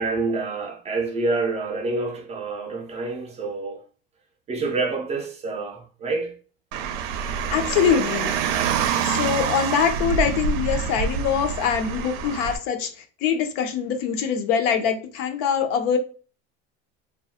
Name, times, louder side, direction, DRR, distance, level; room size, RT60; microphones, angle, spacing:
voice 1, 0.0-3.8 4.5-6.3, right 3 dB, 20° right, 0.4 m, -27 dB
Car, 6.7-12.6, right 7 dB, 85° right, 0.5 m, -26 dB
voice 2, 7.5-8.4 9.0-12.9 13.2-16.0, left 7 dB, 75° left, 0.6 m, -23 dB
2.6 x 2.2 x 2.7 m
cardioid pair, 145°, 30 cm